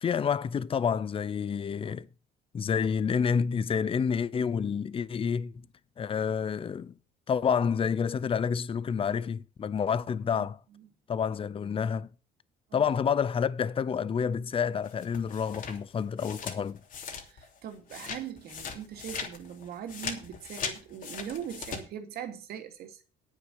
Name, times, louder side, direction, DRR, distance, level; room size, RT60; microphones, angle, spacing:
voice 1, 0.0-2.1 2.5-5.5 6.0-6.9 7.3-10.6 11.1-12.1 12.7-16.8, left 7 dB, 35° left, 0.7 m, -29 dB
voice 2, 10.3-10.9 12.7-12.8 17.2-23.0, right 9 dB, 70° right, 2.7 m, -41 dB
sound 1, 14.8-17.6 17.9-21.8, left 6 dB, 55° left, 3.0 m, -39 dB
9.9 x 8.9 x 6.6 m
cardioid pair, 110°, 17 cm